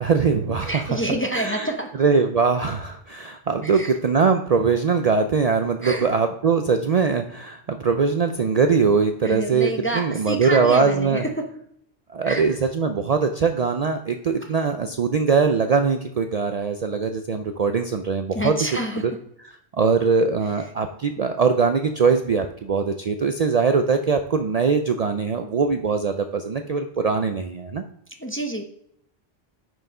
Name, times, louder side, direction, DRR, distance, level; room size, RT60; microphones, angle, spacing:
voice 1, 0.0-1.0 1.3-1.7 2.0-11.2 12.1-18.5 19.7-27.8, right 5 dB, 50° right, 6 dB, 0.5 m, -21 dB
voice 2, 0.6-2.0 3.6-4.0 5.8-6.1 9.2-11.6 12.2-12.6 14.4-14.5 18.3-19.0 20.6-20.7 28.2-28.6, right 1 dB, 15° left, 3 dB, 0.6 m, -28 dB
6.4 x 4.6 x 5.4 m, 0.71 s
omnidirectional pair, 1.1 m